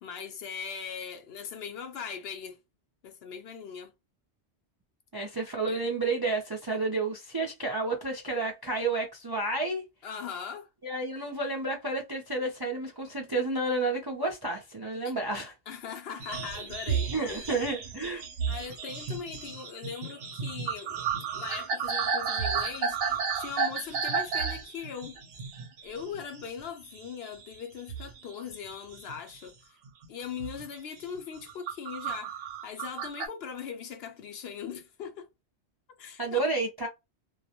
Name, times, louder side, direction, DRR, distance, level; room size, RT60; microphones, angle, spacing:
voice 1, 0.0-2.6 3.0-3.9 5.7-5.8 10.0-10.7 15.0-15.2 15.7-17.7 18.5-21.0 21.3-25.2 25.8-29.8 30.1-35.3 36.0-36.4, left 7 dB, 65° left, 0.7 m, -40 dB
voice 2, 5.1-9.8 10.8-15.5 17.1-18.3 36.2-36.9, right 3 dB, 40° right, 0.3 m, -31 dB
sound 1, 16.2-26.7 26.9-27.6 27.9-29.4 29.9-30.1 30.4-30.6 31.2-33.3, right 6 dB, 60° right, 0.8 m, -33 dB
2.3 x 2.0 x 2.7 m
omnidirectional pair, 1.2 m